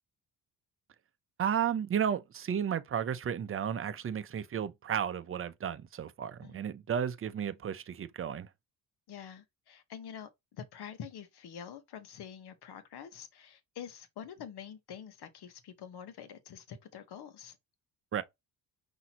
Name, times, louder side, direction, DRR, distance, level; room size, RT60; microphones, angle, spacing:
voice 1, 1.4-8.5 18.1-18.2, right 8 dB, 30° right, 0.6 m, -33 dB
voice 2, 6.4-6.7 9.1-17.6, left 8 dB, 65° left, 1.1 m, -46 dB
5.7 x 2.9 x 2.9 m
cardioid pair, 90°, 42 cm